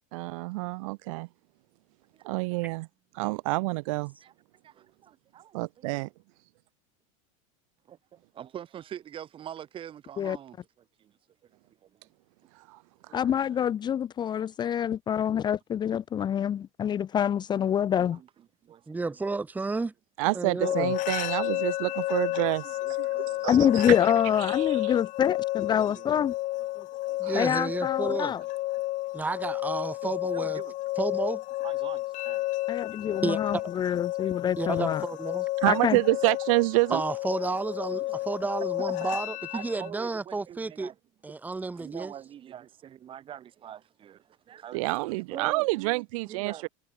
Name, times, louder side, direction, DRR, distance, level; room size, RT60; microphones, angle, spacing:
voice 1, 0.1-1.3 2.2-2.9 3.1-4.1 5.5-6.1 12.6-12.8 13.1-13.2 20.2-23.1 23.4-23.8 24.4-24.9 27.2-27.5 35.6-37.0 44.7-46.7, right 24 dB, 65° right, 0.9 m, -28 dB
voice 2, 2.1-2.7 4.2-4.3 4.6-6.1 7.9-10.6 11.0-11.1 11.8-12.0 13.1-13.2 17.6-18.3 18.6-19.2 20.3-20.8 22.4-23.5 25.6-26.2 26.6-27.6 28.3-28.4 30.0-30.7 31.6-32.4 32.9-33.2 34.2-34.4 36.9-37.0 37.7-38.2 38.8-38.9 39.5-40.9 41.7-44.8 45.1-45.6 46.3-46.7, right 10 dB, 30° right, 8.0 m, -45 dB
voice 3, 13.1-18.2 23.5-26.3 26.8-26.9 27.3-28.4 32.7-35.0 35.7-36.0, left 9 dB, 25° left, 1.2 m, -26 dB
voice 4, 18.9-19.9 20.3-20.9 27.2-28.3 29.1-30.6 31.0-31.4 33.2-33.6 34.6-35.5 36.9-40.9 41.2-42.1, right 3 dB, 10° right, 3.0 m, -31 dB
sound 1, 20.6-39.9, left 18 dB, 45° left, 5.1 m, -31 dB
supercardioid pair, 150°, 18 cm